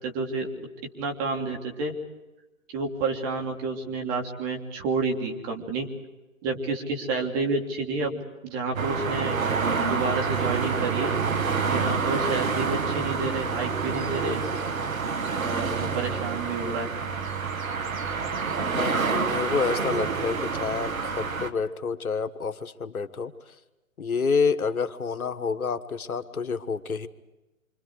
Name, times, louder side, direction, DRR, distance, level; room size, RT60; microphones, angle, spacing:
voice 1, 0.0-0.7 1.0-1.9 2.7-5.9 6.4-9.4 9.8-11.1 11.7-14.4 15.4-16.9, right 3 dB, 25° right, 2 dB, 3.3 m, -29 dB
sound 1, 8.7-21.5, right 5 dB, 70° right, 2.1 m, -28 dB
voice 2, 18.7-23.3 24.0-27.1, left 5 dB, 80° left, 9 dB, 1.5 m, -28 dB
29.0 x 26.0 x 4.8 m, 1.1 s
hypercardioid pair, 140°, 43 cm